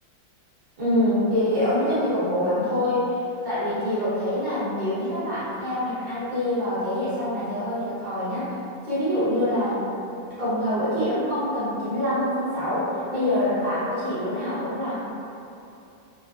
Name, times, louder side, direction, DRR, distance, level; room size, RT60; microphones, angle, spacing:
voice 1, 0.8-8.5 8.8-10.0 10.4-15.0, left 1 dB, 45° right, -12 dB, 0.6 m, -25 dB
3.0 x 2.3 x 2.4 m, 2.7 s
omnidirectional pair, 2.1 m